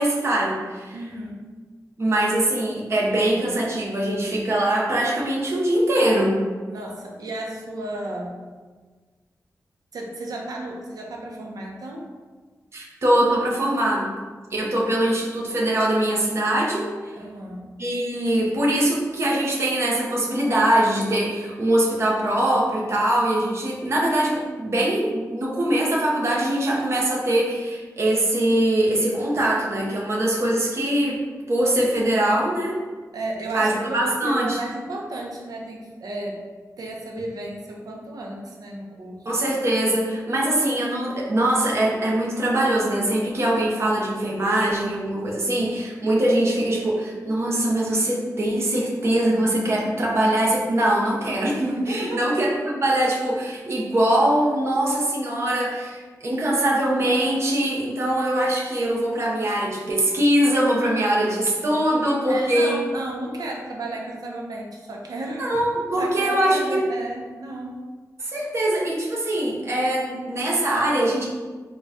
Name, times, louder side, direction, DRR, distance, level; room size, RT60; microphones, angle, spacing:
voice 1, 0.0-1.0 2.0-6.4 12.7-14.1 14.5-17.1 17.8-31.2 31.5-32.8 33.5-34.6 39.2-62.8 65.4-66.8 68.2-71.2, right 1 dB, 45° right, -3 dB, 0.7 m, -22 dB
voice 2, 0.9-1.5 6.6-8.4 9.9-12.1 17.2-17.6 33.1-36.4 36.8-39.2 51.9-52.2 62.3-65.5 65.9-67.7, right 2 dB, 85° right, -1 dB, 0.6 m, -33 dB
3.8 x 2.2 x 3.5 m, 1.4 s
wide cardioid pair, 175°, 6 cm